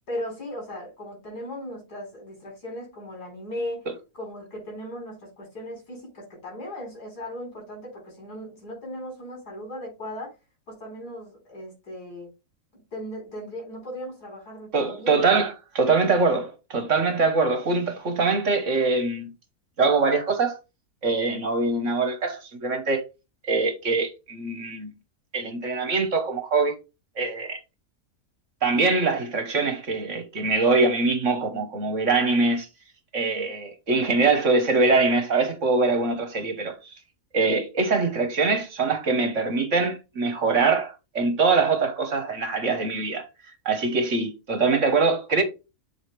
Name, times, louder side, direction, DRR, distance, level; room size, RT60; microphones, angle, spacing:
voice 1, 0.1-3.9 4.1-10.3 10.7-12.3 12.7-15.2, equal, 80° left, 4.6 m, -37 dB
voice 2, 14.7-19.3 19.8-20.6 21.0-23.0 23.5-24.9 25.3-26.8 27.2-27.6 28.6-32.7 33.1-36.7 37.3-43.2 43.6-45.4, right 3 dB, 55° right, 1.5 m, -23 dB
7.3 x 4.9 x 3.3 m
omnidirectional pair, 1.7 m